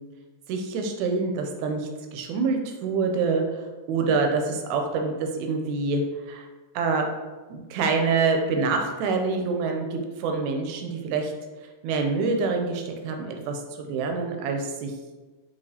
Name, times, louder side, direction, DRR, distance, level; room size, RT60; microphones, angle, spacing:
voice 1, 0.5-3.4 3.9-6.5 6.8-7.0 7.5-11.3 11.8-14.9, right 4 dB, 80° right, 4 dB, 1.7 m, -26 dB
5.8 x 2.9 x 2.7 m, 1.2 s
omnidirectional pair, 3.7 m